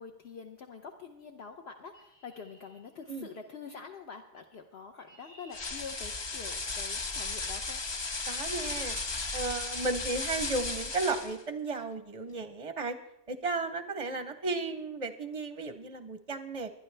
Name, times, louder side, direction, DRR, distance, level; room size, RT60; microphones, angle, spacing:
voice 1, 0.0-7.8, left 5 dB, 60° left, 3 dB, 1.0 m, -46 dB
Chirp tweet, 1.9-3.6 4.6-7.7 8.8-9.1 9.7-10.0 10.2-10.4 10.8-11.1, equal, 80° left, 3.3 m, -60 dB
sound 1, 5.5-11.4, left 3 dB, 30° left, 0.5 m, -35 dB
voice 2, 8.3-9.0 9.3-13.0 13.3-16.7, right 3 dB, 35° right, 9 dB, 0.6 m, -34 dB
23.5 x 9.9 x 3.3 m, 0.86 s
omnidirectional pair, 1.2 m